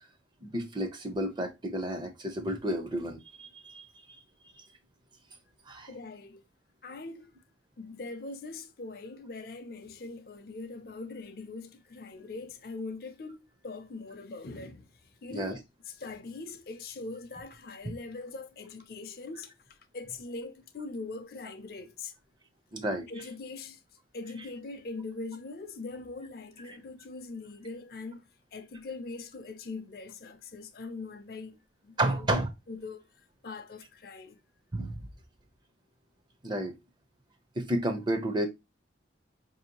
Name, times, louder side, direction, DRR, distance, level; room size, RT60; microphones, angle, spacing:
voice 1, 0.4-4.2 4.6-4.7 5.7-5.9 15.3-15.6 22.7-23.1 26.7-26.8 32.0-32.5 34.7-35.1 36.4-36.7 37.6-38.5, right 1 dB, 25° right, 0.5 m, -31 dB
voice 2, 5.9-6.4 6.8-7.3 7.8-13.4 13.6-22.1 23.1-23.8 24.1-28.2 28.5-31.6 31.8-32.3 32.7-33.0 33.4-34.4, left 3 dB, 50° left, 0.5 m, -42 dB
4.9 x 2.7 x 2.8 m
head